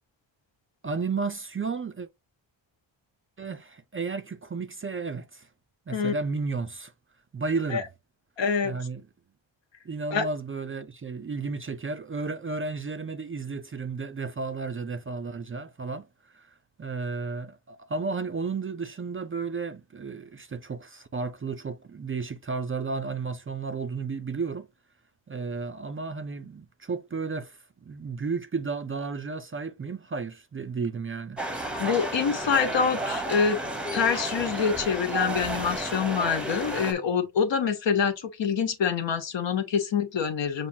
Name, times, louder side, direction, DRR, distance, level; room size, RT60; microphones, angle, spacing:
voice 1, 0.8-2.1 3.4-5.5 5.9-6.9 7.3-7.9 8.6-9.0 9.8-24.7 25.3-31.4, right 4 dB, 30° right, 0.4 m, -33 dB
voice 2, 8.4-8.8 10.1-10.2 31.8-33.6 33.9-40.7, left 6 dB, 65° left, 1.2 m, -26 dB
sound 1, 31.4-36.9, right 1 dB, ahead, 0.8 m, -32 dB
7.0 x 2.6 x 2.7 m
wide cardioid pair, 155°, 46 cm